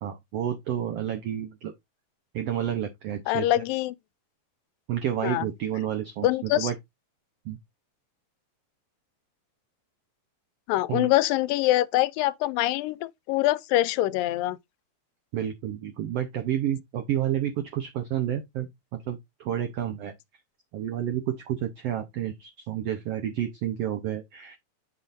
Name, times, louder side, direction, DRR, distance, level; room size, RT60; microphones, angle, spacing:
voice 1, 0.0-1.7 2.3-3.5 4.9-6.7 7.4-7.6 10.9-11.1 15.3-18.7 19.1-20.1 20.7-24.6, right 10 dB, 85° right, 1.4 m, -30 dB
voice 2, 3.3-4.0 5.2-5.5 6.2-6.7 10.7-14.6, left 15 dB, 85° left, 2.2 m, -24 dB
8.5 x 5.7 x 2.6 m
omnidirectional pair, 3.9 m